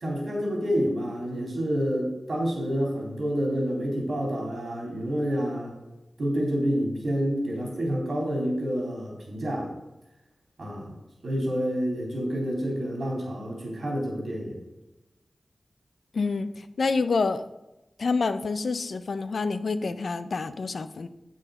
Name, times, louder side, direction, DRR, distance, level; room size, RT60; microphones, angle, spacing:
voice 1, 0.0-5.7 6.2-9.7 10.6-10.9 11.2-14.6, equal, 75° right, -1 dB, 3.4 m, -28 dB
voice 2, 16.1-17.5 18.0-21.1, left 4 dB, 80° left, 12 dB, 0.6 m, -27 dB
7.6 x 6.4 x 6.6 m, 0.98 s
cardioid pair, 45°, 0 cm